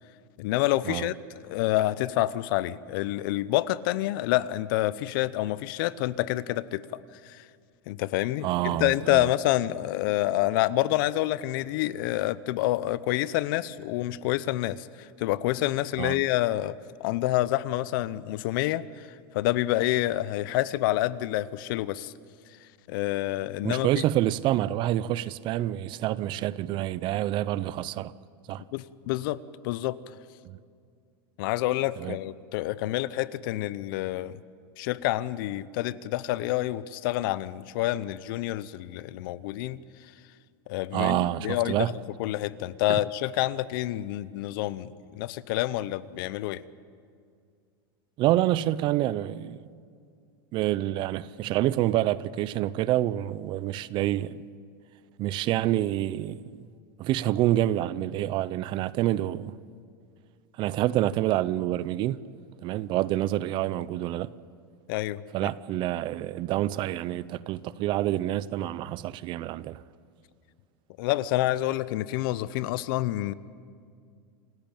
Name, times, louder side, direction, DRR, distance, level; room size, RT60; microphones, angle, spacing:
voice 1, 0.4-1.1 1.4-7.5 7.9-19.1 19.3-22.1 22.9-24.0 28.7-29.4 29.6-30.0 31.4-34.4 34.8-39.8 40.7-41.9 42.2-46.6 64.9-65.5 71.0-73.3, left 15 dB, 60° left, 0.7 m, -28 dB
voice 2, 8.4-9.3 16.0-16.2 23.6-28.1 28.5-28.6 30.4-30.6 32.0-32.2 40.9-41.9 42.9-43.0 48.2-49.6 50.5-54.4 55.2-56.7 57.0-59.5 60.6-62.2 62.6-64.3 65.3-69.8, right 14 dB, 40° right, 0.6 m, -27 dB
28.0 x 14.0 x 9.0 m
supercardioid pair, 135°, 13 cm